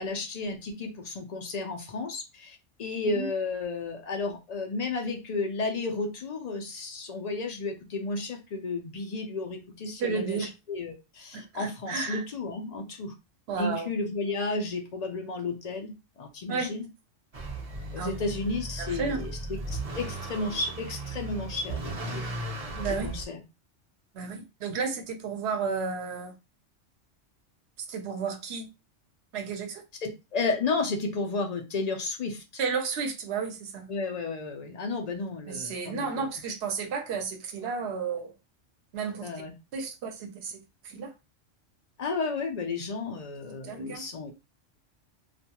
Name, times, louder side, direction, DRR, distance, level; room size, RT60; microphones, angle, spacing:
voice 1, 0.0-13.1 13.6-16.9 17.9-19.4 19.7-22.3 23.0-23.4 30.0-32.4 33.9-36.3 39.2-39.5 42.0-44.3, left 3 dB, 75° left, 0.3 m, -33 dB
voice 2, 10.0-10.5 11.3-12.2 13.5-13.9 16.5-16.7 18.0-18.1 18.8-19.2 22.7-23.1 24.1-26.3 27.8-28.7 29.3-29.8 32.6-33.9 35.5-38.3 38.9-39.3 39.7-40.6 40.8-41.1 43.6-44.0, right 5 dB, 65° right, 0.9 m, -32 dB
Motor vehicle (road) / Accelerating revving vroom, 17.3-23.2, right 2 dB, 40° right, 0.6 m, -36 dB
2.4 x 2.2 x 2.8 m
omnidirectional pair, 1.3 m